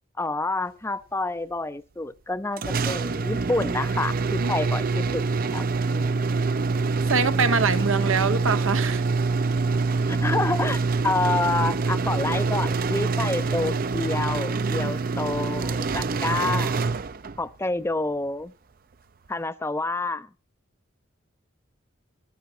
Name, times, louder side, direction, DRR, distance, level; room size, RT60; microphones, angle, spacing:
voice 1, 0.2-5.2 5.5-6.2 10.0-16.9 17.4-18.5 19.3-20.3, left 2 dB, 15° left, 0.5 m, -28 dB
sound 1, 2.6-17.5, right 4 dB, 45° right, 0.5 m, -25 dB
voice 2, 7.0-9.0 14.6-14.9, right 5 dB, 85° right, 0.9 m, -24 dB
13.5 x 12.5 x 2.8 m
head